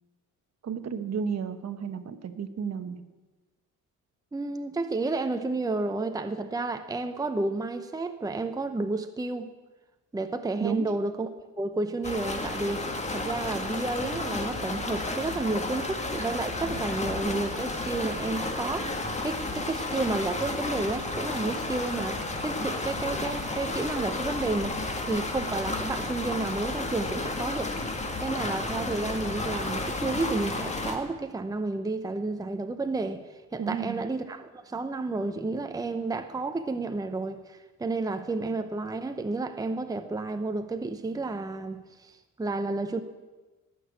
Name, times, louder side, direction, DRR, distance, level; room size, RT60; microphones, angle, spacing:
voice 1, 0.6-3.0 10.6-10.9 33.6-34.0, right 6 dB, 55° right, 10 dB, 1.2 m, -32 dB
voice 2, 4.3-9.5 10.1-11.3 11.6-24.8 25.0-27.7 28.2-43.0, right 3 dB, 10° right, 8 dB, 0.7 m, -31 dB
sound 1, 12.0-31.0, left 2 dB, 20° left, 1.8 m, -32 dB
18.5 x 6.4 x 9.4 m, 1.2 s
cardioid pair, 125°, 32 cm